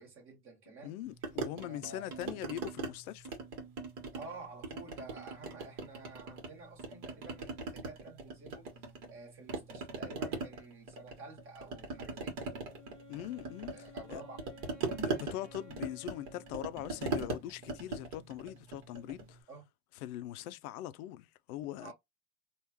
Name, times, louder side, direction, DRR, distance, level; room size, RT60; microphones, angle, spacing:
voice 1, 0.0-1.0 1.6-2.4 4.1-8.7 9.1-12.7 13.7-14.4 19.5-19.6 21.8-21.9, right 3 dB, 25° right, 1.7 m, -50 dB
voice 2, 0.8-3.4 13.1-13.7 14.1-14.2 15.0-19.4 20.0-21.9, left 13 dB, 65° left, 0.6 m, -42 dB
sound 1, 1.2-2.9 3.2-4.3 4.6-6.5 6.8-9.2 9.5-19.3, right 4 dB, 45° right, 1.6 m, -40 dB
Wind instrument woodwind instrument, 12.7-17.5, left 1 dB, 5° right, 1.1 m, -56 dB
3.4 x 2.5 x 3.0 m
supercardioid pair, 140°, 47 cm